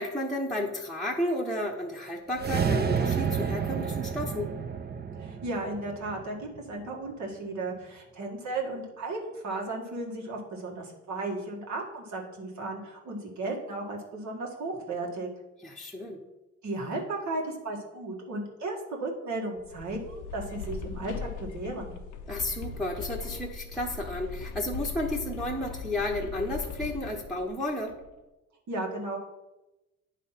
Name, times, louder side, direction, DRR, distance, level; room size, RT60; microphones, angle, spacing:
voice 1, 0.0-4.5 15.6-16.2 22.3-27.9, left 1 dB, ahead, -3 dB, 0.9 m, -32 dB
sound 1, 2.3-6.7, right 6 dB, 35° right, 0.7 m, -30 dB
voice 2, 5.2-15.3 16.6-22.0 28.7-29.2, right 2 dB, 70° right, 0 dB, 1.8 m, -35 dB
sound 2, 19.6-28.1, left 5 dB, 80° left, 0.7 m, -39 dB
9.5 x 3.3 x 5.7 m, 1.0 s
cardioid pair, 90°, 30 cm